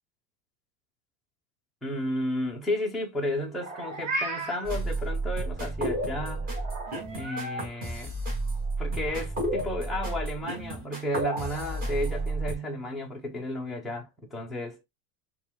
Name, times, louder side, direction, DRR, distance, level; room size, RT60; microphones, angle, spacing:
voice 1, 1.8-6.5 7.1-8.2 8.8-14.8, left 1 dB, ahead, 0.4 m, -33 dB
Meow, 3.5-4.7 6.6-7.6, right 2 dB, 40° right, 1.9 m, -34 dB
sound 1, 4.6-12.5, right 2 dB, 20° right, 1.4 m, -31 dB
4.5 x 2.3 x 3.5 m
supercardioid pair, 150°, 47 cm